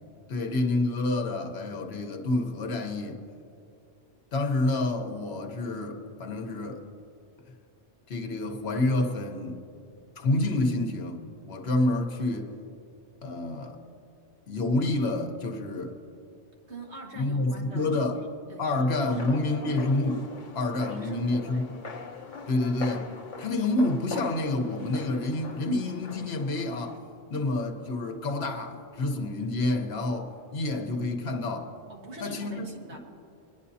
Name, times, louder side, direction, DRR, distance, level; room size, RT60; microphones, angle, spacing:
voice 1, 0.3-3.2 4.3-6.8 8.1-9.6 10.2-11.2 11.5-12.5 13.2-13.8 14.5-16.0 17.1-18.2 18.6-20.3 20.5-21.6 22.5-23.1 23.4-27.0 27.3-31.7 32.2-33.0, left 2 dB, 65° left, 1.2 m, -28 dB
voice 2, 16.7-19.5 20.8-21.7 31.9-33.0, right 2 dB, 75° right, 1.8 m, -44 dB
sound 1, 19.2-27.0, left 4 dB, 45° left, 1.0 m, -42 dB
22.5 x 10.5 x 2.8 m
omnidirectional pair, 1.1 m